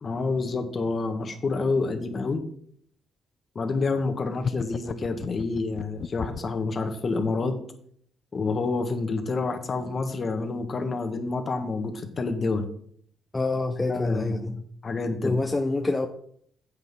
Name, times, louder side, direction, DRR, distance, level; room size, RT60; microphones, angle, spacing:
voice 1, 0.0-2.4 3.5-7.6 8.3-12.7 13.9-14.5 14.8-15.3, left 3 dB, 40° left, 1.5 m, -28 dB
sound 1, 4.4-6.6, left 7 dB, 55° left, 0.4 m, -34 dB
voice 2, 13.3-14.6 15.2-16.1, left 2 dB, 20° left, 0.8 m, -26 dB
9.6 x 7.9 x 3.7 m
cardioid pair, 90°, 0 cm